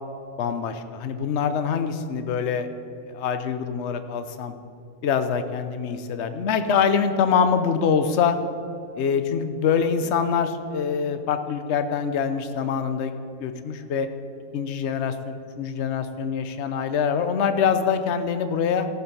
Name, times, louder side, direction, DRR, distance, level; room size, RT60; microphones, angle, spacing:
voice 1, 0.4-2.7 3.0-4.5 5.0-8.4 9.0-13.1 13.4-14.1 14.5-18.9, left 6 dB, 55° left, 9 dB, 0.7 m, -24 dB
16.0 x 7.0 x 5.5 m, 2.7 s
omnidirectional pair, 2.0 m